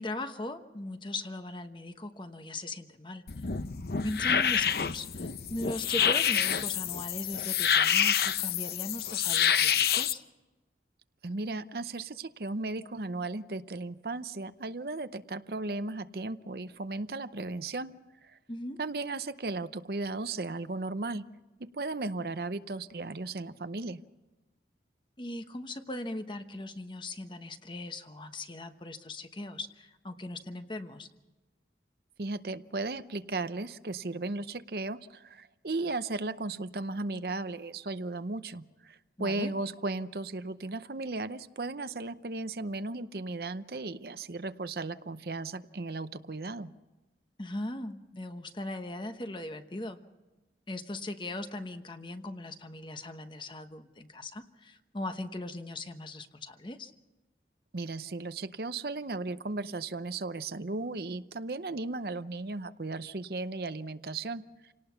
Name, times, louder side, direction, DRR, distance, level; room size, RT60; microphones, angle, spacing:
voice 1, 0.0-3.4 4.0-10.2 18.5-18.8 25.2-31.1 39.2-39.5 47.4-50.0 50.7-56.9, left 1 dB, 25° left, 8 dB, 1.0 m, -39 dB
sound 1, 3.3-10.1, left 8 dB, 60° left, 0.7 m, -27 dB
voice 2, 11.2-17.9 18.2-18.4 18.8-21.2 21.6-24.0 32.2-46.7 57.7-64.7, right 3 dB, 60° right, 12 dB, 0.7 m, -36 dB
28.0 x 18.5 x 5.8 m, 1.1 s
head